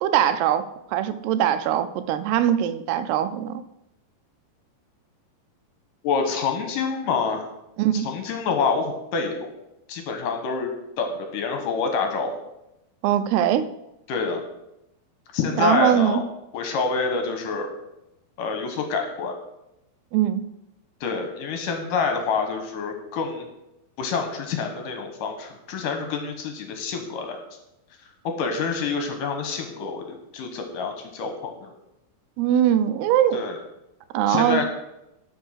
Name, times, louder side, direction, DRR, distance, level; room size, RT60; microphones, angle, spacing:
voice 1, 0.0-3.6 7.8-8.1 13.0-13.7 15.6-16.2 20.1-20.4 32.4-33.4 34.1-34.7, right 10 dB, 90° right, 12 dB, 2.7 m, -21 dB
voice 2, 6.0-7.4 7.9-9.5 9.9-10.7 11.0-12.3 14.1-14.4 15.3-16.2 16.5-17.7 18.4-19.4 21.0-23.5 24.0-27.4 28.2-31.7 33.3-33.6 34.3-34.7, left 5 dB, 65° left, 5 dB, 2.4 m, -27 dB
12.5 x 5.6 x 6.4 m, 0.88 s
omnidirectional pair, 4.6 m